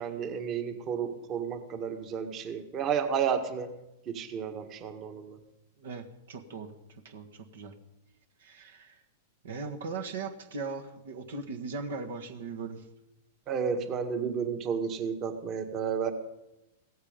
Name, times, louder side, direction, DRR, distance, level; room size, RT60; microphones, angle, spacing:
voice 1, 0.0-3.7 4.1-5.4 13.5-16.1, right 7 dB, 35° right, 8 dB, 1.8 m, -32 dB
voice 2, 5.8-6.8 7.0-7.7 8.4-9.0 9.4-12.8, right 4 dB, 75° right, 5 dB, 1.6 m, -39 dB
16.5 x 14.5 x 5.3 m, 0.94 s
hypercardioid pair, 110°, 0 cm